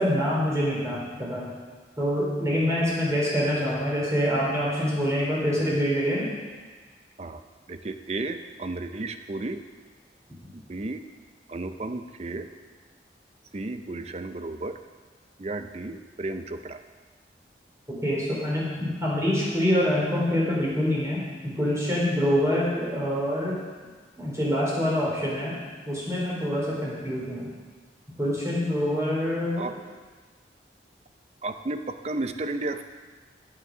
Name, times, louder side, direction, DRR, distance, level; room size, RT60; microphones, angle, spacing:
voice 1, 0.0-1.5 2.0-6.3 18.0-23.6 24.2-25.6 25.8-27.5 28.2-29.6, equal, 20° right, -6 dB, 3.1 m, -25 dB
voice 2, 7.7-9.6 10.5-11.1 11.5-12.5 13.5-14.8 15.4-16.8 29.6-29.7 31.4-32.8, right 2 dB, 35° right, 9 dB, 0.5 m, -33 dB
9.3 x 7.6 x 6.0 m, 1.4 s
head